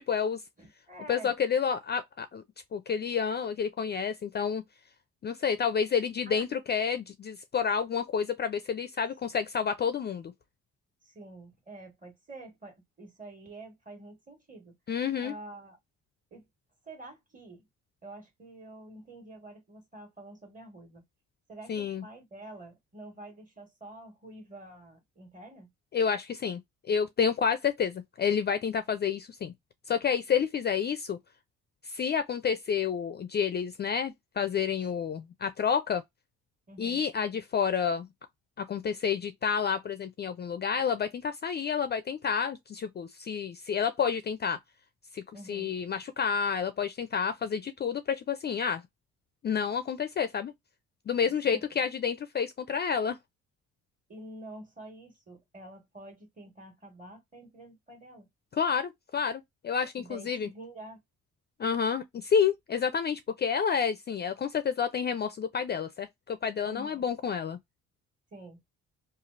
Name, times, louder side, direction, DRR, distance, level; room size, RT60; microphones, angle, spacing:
voice 1, 0.0-0.4 1.1-2.4 2.7-4.6 5.2-10.3 14.9-15.3 21.7-22.0 25.9-26.6 26.9-29.5 29.9-31.2 31.8-36.0 36.8-38.1 38.6-44.6 45.1-45.2 45.5-48.8 49.4-50.5 51.1-53.2 58.5-60.5 61.6-67.6, left 7 dB, 35° left, 0.4 m, -29 dB
voice 2, 0.6-1.3 6.2-6.4 11.0-14.7 15.2-15.8 16.3-16.5 16.8-17.6 18.0-21.0 21.5-25.7 34.8-34.9 36.7-37.0 45.3-45.7 51.4-51.6 54.1-58.3 60.0-61.0 66.6-67.0 68.3-68.6, right 1 dB, 25° right, 1.5 m, -47 dB
3.1 x 2.4 x 2.4 m
cardioid pair, 90°, 30 cm